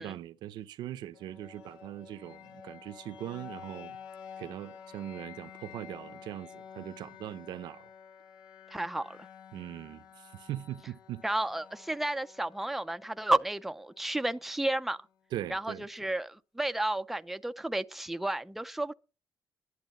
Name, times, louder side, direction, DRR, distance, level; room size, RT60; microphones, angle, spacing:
voice 1, 0.0-4.0 4.4-7.9 9.5-11.2 15.3-15.9, right 12 dB, 90° right, 0.8 m, -41 dB
sound 1, 1.1-15.1, left 8 dB, 90° left, 1.6 m, -51 dB
voice 2, 8.7-9.2 11.2-15.0 15.5-18.9, right 1 dB, 5° right, 0.5 m, -32 dB
11.5 x 11.5 x 4.2 m
cardioid pair, 160°, 7 cm